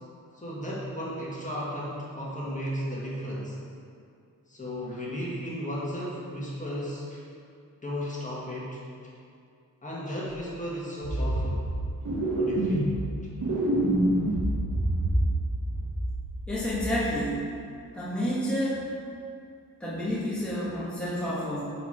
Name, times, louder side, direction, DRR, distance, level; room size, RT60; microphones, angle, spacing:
voice 1, 0.3-3.6 4.5-7.2 7.8-8.8 9.8-11.6 12.4-12.9, equal, 25° left, -6 dB, 1.7 m, -34 dB
sound 1, 10.3-10.4 11.0-11.8 12.0-13.1 13.4-15.4 15.7-16.4 16.7-17.0, right 1 dB, 65° right, 1.3 m, -26 dB
voice 2, 16.5-17.5 17.9-18.8 19.8-21.6, equal, 5° left, -9 dB, 1.4 m, -29 dB
6.8 x 4.6 x 4.8 m, 2.4 s
wide cardioid pair, 105°, 33 cm